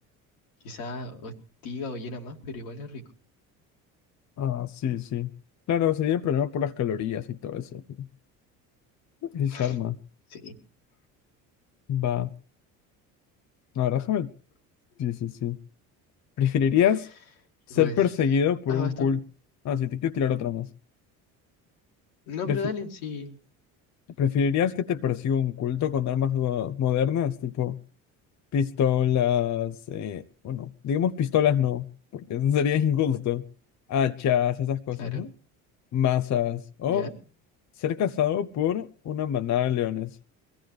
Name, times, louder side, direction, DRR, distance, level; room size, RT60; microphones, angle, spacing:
voice 1, 0.6-1.3 1.6-3.0 9.5-9.7 10.3-10.6 17.7-18.0 18.7-19.1 22.3-23.4 35.0-35.3 36.9-37.1, left 3 dB, 80° left, 2.4 m, -35 dB
voice 2, 4.4-5.3 5.7-8.1 9.2-10.0 11.9-12.3 13.8-14.3 15.0-15.6 16.4-17.1 17.7-19.2 19.6-20.7 22.5-22.6 24.2-27.8 28.5-33.4 33.9-35.3 35.9-37.1 37.8-40.1, left 9 dB, 45° left, 0.7 m, -25 dB
22.5 x 15.0 x 3.2 m
hypercardioid pair, 65°, 41 cm